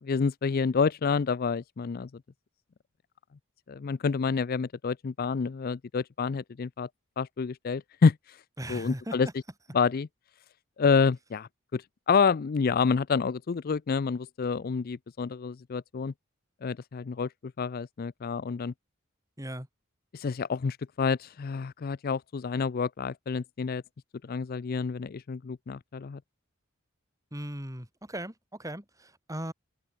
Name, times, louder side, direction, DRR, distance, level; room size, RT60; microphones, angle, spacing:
voice 1, 0.0-2.1 3.7-6.9 7.2-8.4 8.7-9.3 9.7-10.1 10.8-16.1 16.6-18.7 20.1-23.8 24.2-26.2, left 5 dB, 45° left, 0.4 m, -28 dB
voice 2, 8.6-9.3 19.4-19.7 27.3-29.5, right 1 dB, 15° right, 5.1 m, -38 dB
head